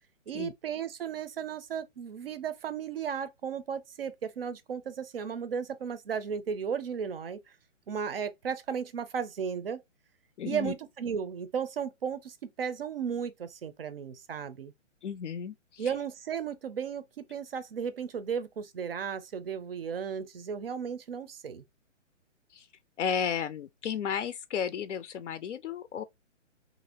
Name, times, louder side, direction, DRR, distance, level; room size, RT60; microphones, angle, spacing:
voice 1, 0.3-7.4 7.9-9.8 10.4-14.7 15.8-21.6, right 7 dB, 50° right, 0.5 m, -35 dB
voice 2, 10.4-10.7 15.0-15.9 22.5-22.7 23.0-26.0, left 7 dB, 70° left, 0.5 m, -33 dB
2.8 x 2.5 x 2.8 m
hypercardioid pair, 155°, 38 cm